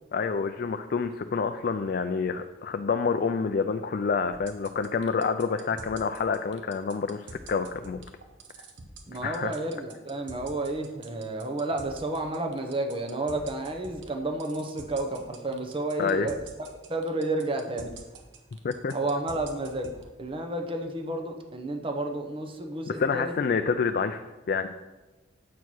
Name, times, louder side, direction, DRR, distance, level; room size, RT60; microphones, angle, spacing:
voice 1, 0.1-8.0 9.2-9.5 16.0-16.3 18.6-18.9 23.0-24.7, left 5 dB, 50° left, 8 dB, 0.3 m, -28 dB
sound 1, 4.3-20.0, right 4 dB, 70° right, 0.9 m, -46 dB
voice 2, 9.1-18.1 18.9-23.3, right 2 dB, 25° right, 4 dB, 0.8 m, -31 dB
8.3 x 4.5 x 6.2 m, 1.2 s
head